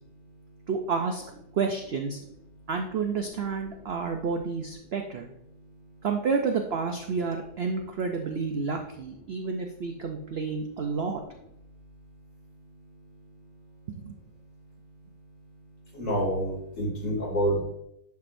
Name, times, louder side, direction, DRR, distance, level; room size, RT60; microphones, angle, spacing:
voice 1, 0.7-1.2 1.5-2.2 2.7-5.3 6.0-11.2 14.0-14.1, right 5 dB, 70° right, 4 dB, 0.5 m, -30 dB
voice 2, 15.9-17.6, equal, 50° left, -5 dB, 3.1 m, -27 dB
10.5 x 4.7 x 2.6 m, 0.78 s
omnidirectional pair, 1.8 m